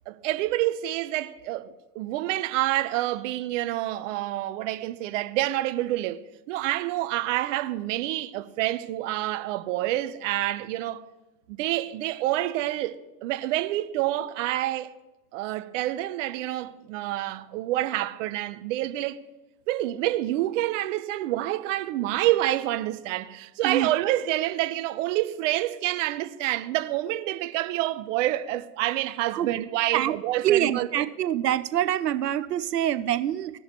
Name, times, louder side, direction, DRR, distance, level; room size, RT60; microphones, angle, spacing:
voice 1, 0.1-11.0 11.5-14.9 15.3-19.2 19.7-31.1, right 15 dB, 55° right, 0.8 m, -28 dB
voice 2, 30.4-33.5, right 11 dB, 90° right, 0.7 m, -25 dB
17.5 x 6.4 x 3.0 m
hypercardioid pair, 110°, 46 cm